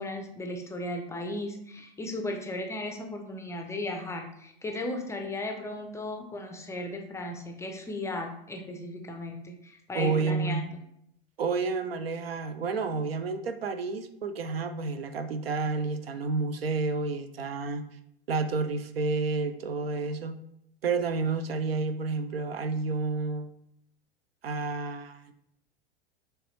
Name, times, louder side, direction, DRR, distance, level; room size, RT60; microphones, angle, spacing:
voice 1, 0.0-10.7, left 1 dB, 10° left, 4 dB, 0.4 m, -36 dB
voice 2, 9.9-10.7 11.4-17.9 18.3-20.4 20.8-23.5 24.4-25.3, right 4 dB, 80° right, 9 dB, 0.5 m, -30 dB
4.7 x 3.1 x 3.1 m, 0.75 s
figure-of-eight pair, 90°, 30 cm